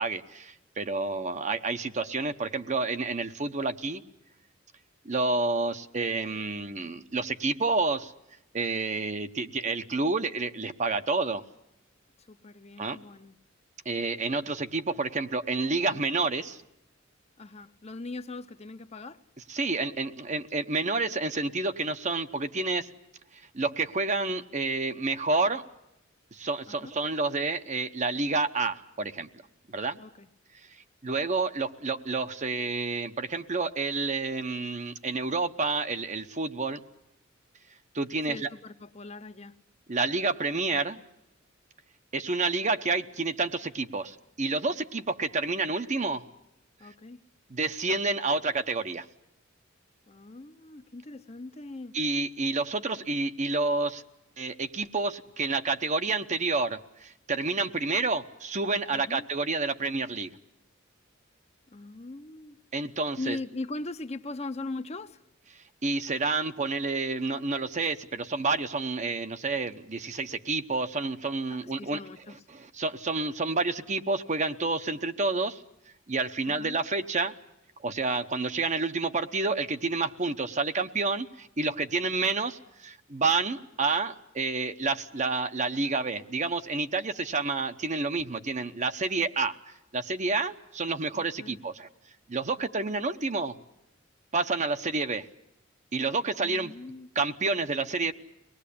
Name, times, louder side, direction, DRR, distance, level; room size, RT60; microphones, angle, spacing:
voice 1, 0.0-4.0 5.0-8.1 8.5-11.4 12.8-13.0 13.8-16.6 19.5-22.9 23.5-25.6 26.3-29.3 29.7-30.0 31.0-36.8 37.9-38.5 39.9-41.0 42.1-46.2 47.5-49.1 51.9-54.0 54.4-60.3 62.7-63.4 65.8-72.0 72.5-75.6 76.1-77.3 77.8-89.6 89.9-91.9 92.3-93.5 94.3-95.3 95.9-96.7 97.1-98.1, right 3 dB, 35° right, 0.9 m, -29 dB
voice 2, 12.3-13.4 17.4-19.2 26.7-26.9 30.0-30.3 38.3-39.6 46.8-47.2 50.1-51.9 58.9-59.3 61.7-62.6 63.2-65.2 71.5-72.4 76.5-76.8 91.1-91.6 96.4-97.1, left 2 dB, 30° left, 0.8 m, -40 dB
24.0 x 19.5 x 8.5 m
head